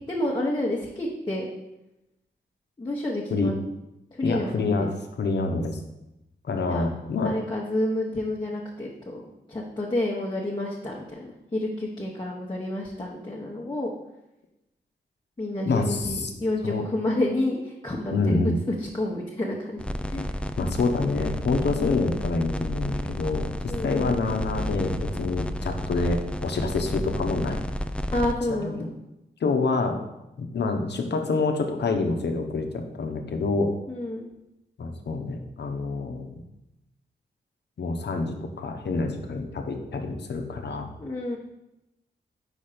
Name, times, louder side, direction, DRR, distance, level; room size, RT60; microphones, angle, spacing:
voice 1, 0.1-1.5 2.8-3.5 4.1-4.8 6.7-6.9 7.2-9.2 9.5-13.9 15.4-18.5 18.8-19.8 20.1-20.3 23.7-24.0 28.1-28.9 33.9-34.3 41.0-41.4, left 1 dB, 25° left, -3 dB, 1.0 m, -29 dB
voice 2, 4.2-4.9 5.2-5.8 6.4-7.3 15.6-16.3 16.6-16.8 18.1-18.6 20.6-27.6 28.5-28.8 29.4-30.0 30.4-33.7 34.8-36.4 37.8-40.9, left 3 dB, 70° left, 4 dB, 0.8 m, -27 dB
sound 1, 19.8-28.3, left 1 dB, 5° left, 0.4 m, -31 dB
5.1 x 4.3 x 5.0 m, 0.92 s
cardioid pair, 55°, 18 cm